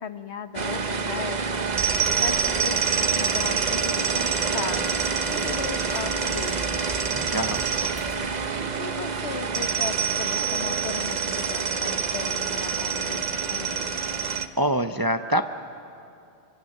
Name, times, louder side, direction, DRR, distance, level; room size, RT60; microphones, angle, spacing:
voice 1, 0.0-1.7 2.2-6.8 8.6-14.0, left 6 dB, 75° left, 9 dB, 1.3 m, -36 dB
sound 1, 0.5-14.5, right 5 dB, 45° right, 0.9 m, -26 dB
sound 2, 1.7-8.5, right 2 dB, 75° right, 2.3 m, -42 dB
voice 2, 7.1-7.7 14.6-15.4, equal, 25° right, 7 dB, 0.5 m, -25 dB
26.0 x 24.0 x 6.5 m, 2.6 s
omnidirectional pair, 1.1 m